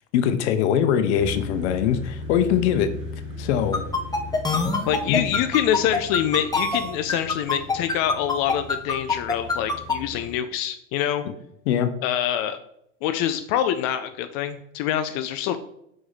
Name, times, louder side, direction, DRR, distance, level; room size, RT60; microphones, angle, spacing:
voice 1, 0.1-2.9 3.4-3.8 4.5-4.8 5.1-5.4 11.7-11.9, left 9 dB, 60° left, 10 dB, 0.8 m, -22 dB
sound 1, 1.1-10.3, left 3 dB, 80° right, 2.1 m, -38 dB
sound 2, 3.7-9.9, left 3 dB, 10° left, 0.9 m, -24 dB
voice 2, 4.9-11.2 12.0-12.6 13.0-15.6, left 10 dB, 45° left, 9 dB, 0.5 m, -25 dB
4.9 x 4.8 x 4.0 m, 0.77 s
hypercardioid pair, 90°, 38 cm